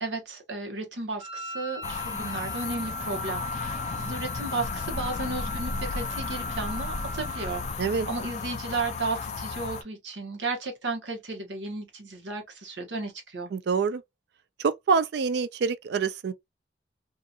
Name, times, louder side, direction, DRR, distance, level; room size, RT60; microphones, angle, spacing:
voice 1, 0.0-13.5, right 3 dB, 85° right, 1.0 m, -34 dB
Wind instrument woodwind instrument, 1.2-7.8, right 1 dB, 30° right, 1.0 m, -39 dB
sound 1, 1.8-9.8, left 4 dB, 40° left, 0.3 m, -34 dB
voice 2, 13.5-14.0 14.6-16.3, right 5 dB, 65° right, 0.4 m, -26 dB
2.8 x 2.4 x 2.3 m
head